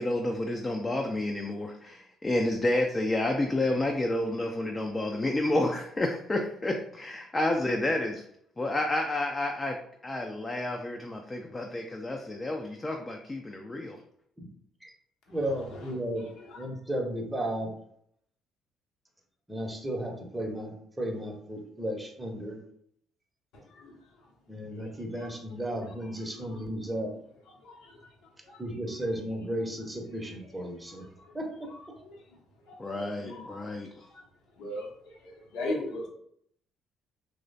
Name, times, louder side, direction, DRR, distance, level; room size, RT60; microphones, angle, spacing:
voice 1, 0.0-8.3 8.6-9.8 10.0-14.0 32.8-33.9, left 1 dB, 25° left, 2 dB, 0.3 m, -30 dB
voice 2, 15.3-16.3 16.6-17.7 19.5-22.6 24.5-27.1 28.6-31.1 31.3-31.7, right 1 dB, 15° right, 2 dB, 0.6 m, -34 dB
voice 3, 32.9-33.5 34.6-34.9 35.2-36.1, left 1 dB, 65° left, -1 dB, 0.7 m, -35 dB
3.0 x 2.0 x 2.5 m, 0.69 s
figure-of-eight pair, 45°, 0 cm